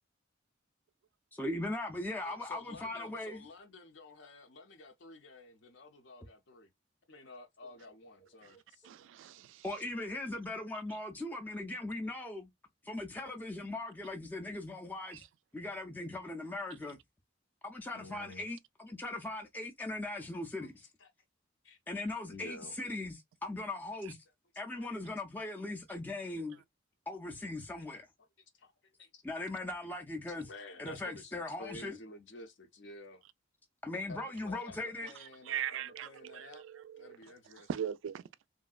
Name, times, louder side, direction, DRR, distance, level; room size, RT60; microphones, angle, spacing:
voice 1, 1.3-3.4 9.6-12.5 12.8-15.2 15.5-17.0 17.6-20.9 21.9-24.2 24.6-26.6 27.1-28.1 29.2-30.5 30.8-32.0 33.8-35.1, left 2 dB, 10° left, 0.4 m, -39 dB
voice 2, 2.2-6.7 7.1-8.9 16.0-16.1 17.9-18.4 20.1-20.3 20.6-20.7 21.0-21.1 21.6-21.8 22.3-22.7 24.7-24.9 28.5-29.5 30.3-33.2 34.1-36.7 37.0-37.7, left 2 dB, 65° left, 0.6 m, -51 dB
voice 3, 8.9-9.6 35.5-37.2 37.7-38.2, right 9 dB, 80° right, 0.3 m, -39 dB
3.1 x 2.6 x 2.3 m
head